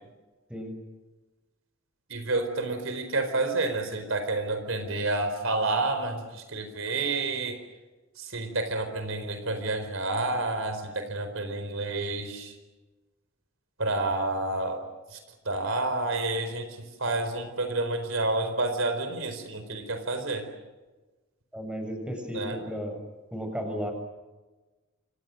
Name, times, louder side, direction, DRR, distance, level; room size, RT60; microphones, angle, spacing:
voice 1, 2.1-7.6 8.2-12.5 13.8-14.8 15.1-15.2 15.4-20.5 22.3-22.6, right 2 dB, 70° right, 8 dB, 4.4 m, -29 dB
voice 2, 21.5-23.0 23.3-23.9, equal, 5° right, 5 dB, 6.4 m, -34 dB
28.5 x 27.0 x 6.5 m, 1.2 s
head